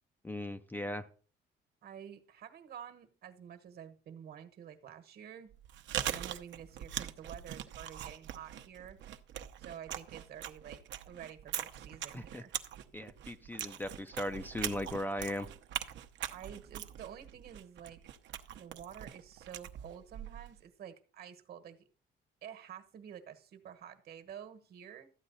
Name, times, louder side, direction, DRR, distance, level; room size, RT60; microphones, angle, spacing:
voice 1, 0.2-1.0 12.1-12.4 12.9-15.5, left 1 dB, 10° left, 0.5 m, -38 dB
voice 2, 1.8-5.5 6.1-9.0 9.6-12.5 16.3-18.0 18.6-21.8 22.4-25.1, right 9 dB, 55° right, 1.3 m, -49 dB
Chewing mastication, 5.5-20.6, right 11 dB, 70° right, 0.8 m, -42 dB
13.0 x 8.8 x 4.0 m
cardioid pair, 145°, 19 cm